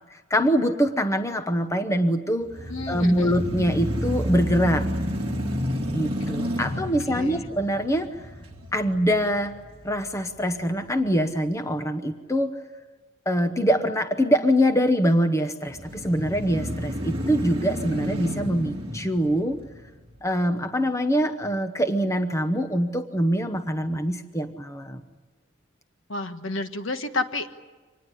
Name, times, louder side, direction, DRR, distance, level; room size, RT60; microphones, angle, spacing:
voice 1, 0.1-2.5 2.9-4.9 5.9-8.1 8.7-9.5 9.8-12.5 13.3-19.6 20.2-25.0, equal, 15° left, 8 dB, 0.9 m, -24 dB
sound 1, 2.4-10.6 11.0-11.1 15.7-20.2, equal, 25° right, 2.6 m, -31 dB
voice 2, 2.7-3.3 6.7-7.4 26.1-27.6, left 2 dB, 60° left, 8 dB, 1.4 m, -31 dB
25.5 x 19.5 x 10.0 m, 1.3 s
head